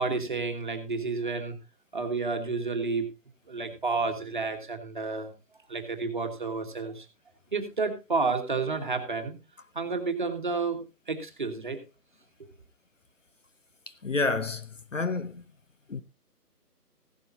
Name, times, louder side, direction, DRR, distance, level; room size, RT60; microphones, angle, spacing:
voice 1, 0.0-1.5 1.9-3.1 3.5-5.3 5.7-7.1 7.5-9.4 9.7-11.8, right 4 dB, 30° right, 1.5 m, -30 dB
voice 2, 14.0-14.7 14.9-15.4 15.9-16.0, left 3 dB, 50° left, 0.8 m, -28 dB
15.5 x 11.5 x 2.7 m
figure-of-eight pair, 170°, 48 cm